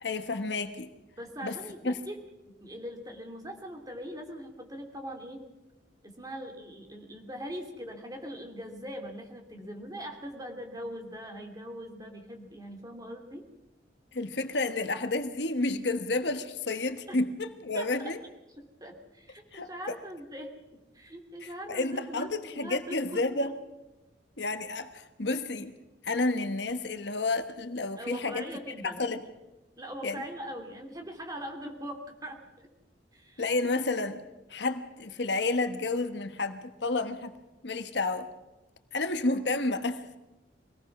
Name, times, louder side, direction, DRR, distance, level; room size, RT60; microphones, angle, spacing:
voice 1, 0.0-0.9 1.4-1.6 1.8-1.9 14.1-18.2 19.5-19.7 21.4-23.5 24.4-25.7 26.0-28.4 28.8-29.2 30.0-30.2 33.4-34.2 34.5-37.3 37.6-38.3 38.9-40.0, left 2 dB, 65° left, 9 dB, 1.3 m, -30 dB
voice 2, 1.2-2.2 2.6-5.5 6.0-13.4 17.1-17.2 17.7-18.1 18.8-20.5 20.9-23.5 28.0-29.1 29.8-32.7 33.1-33.7, equal, 20° right, 3 dB, 2.8 m, -41 dB
24.0 x 18.5 x 6.1 m, 1.0 s
head